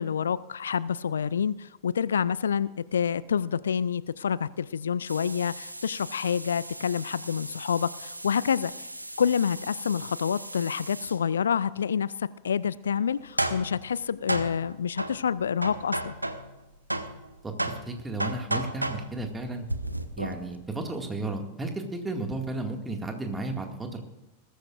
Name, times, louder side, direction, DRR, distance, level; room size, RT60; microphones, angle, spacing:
voice 1, 0.0-8.9 9.2-16.1, left 7 dB, 70° left, 20 dB, 0.3 m, -28 dB
sound 1, 5.1-11.2 13.1-16.6 16.9-20.6, right 1 dB, 85° right, 0.9 m, -35 dB
voice 2, 17.4-19.7 20.2-24.0, right 2 dB, 10° right, 4 dB, 2.1 m, -33 dB
20.5 x 13.5 x 2.5 m, 1.0 s
figure-of-eight pair, 90°, 0 cm